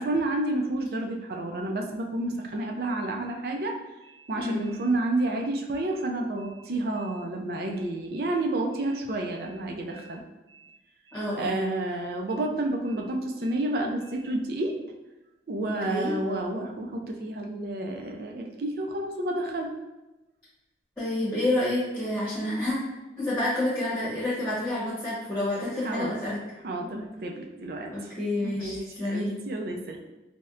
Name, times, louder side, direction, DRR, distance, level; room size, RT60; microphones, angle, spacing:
voice 1, 0.0-3.7 4.1-10.2 10.5-10.7 11.4-14.7 15.5-19.7 25.8-26.1 26.6-28.1 28.4-30.0, right 2 dB, 55° right, 1 dB, 0.4 m, -30 dB
voice 2, 11.1-11.5 15.7-16.1 21.0-22.8 23.2-26.4 27.9-29.4, left 1 dB, 5° left, -10 dB, 0.9 m, -29 dB
4.2 x 2.1 x 2.4 m, 1.0 s
head